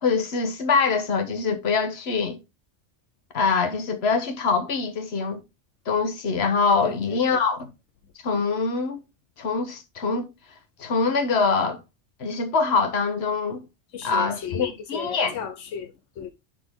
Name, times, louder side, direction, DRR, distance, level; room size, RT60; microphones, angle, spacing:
voice 1, 0.0-2.4 3.3-5.4 5.9-7.7 8.2-9.0 9.4-10.3 10.8-11.8 12.2-13.6 14.0-15.4, left 4 dB, 60° left, 1.4 m, -24 dB
voice 2, 6.8-7.4 13.9-16.3, left 7 dB, 85° left, 1.1 m, -35 dB
11.0 x 3.9 x 3.7 m
omnidirectional pair, 1.2 m